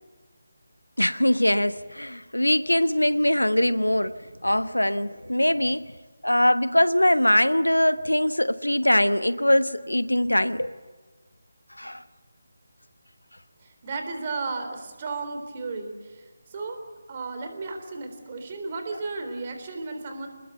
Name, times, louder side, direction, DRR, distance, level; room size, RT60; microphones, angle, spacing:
voice 1, 1.0-4.2 4.4-5.9 6.2-10.7 11.8-12.0, left 1 dB, 85° left, 1.1 m, -22 dB
voice 2, 13.6-16.8 17.1-20.3, right 3 dB, 30° right, 3.8 m, -34 dB
27.5 x 20.5 x 8.1 m
figure-of-eight pair, 155°, 0 cm